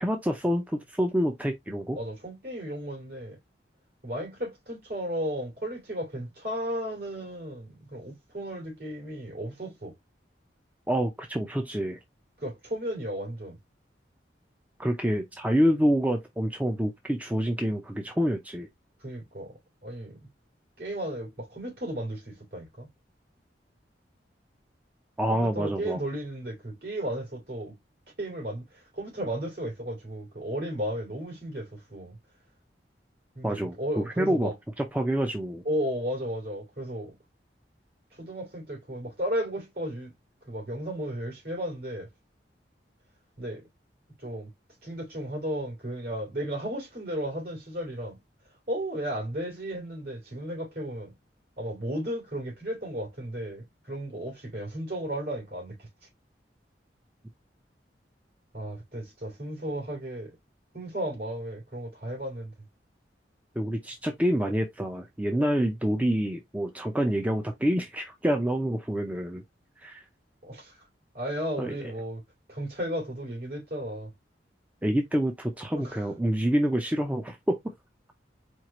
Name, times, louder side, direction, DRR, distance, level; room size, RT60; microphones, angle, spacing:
voice 1, 0.0-2.0 10.9-12.0 14.8-18.7 25.2-26.0 33.4-35.6 63.6-69.4 69.8-70.0 71.6-71.7 74.8-77.6, equal, 10° right, 0.5 m, -27 dB
voice 2, 1.9-3.4 4.0-9.9 12.4-13.6 19.0-20.3 20.8-22.9 25.3-27.8 28.2-28.6 28.9-32.2 33.3-34.5 35.6-37.2 38.1-40.1 40.4-42.1 43.4-43.7 44.2-44.5 44.8-48.2 48.7-51.1 51.6-55.9 58.5-60.3 60.7-62.5 70.4-70.7 71.1-72.2 72.5-74.1 75.8-76.0, right 1 dB, 60° right, 2.9 m, -34 dB
4.5 x 2.4 x 2.9 m
head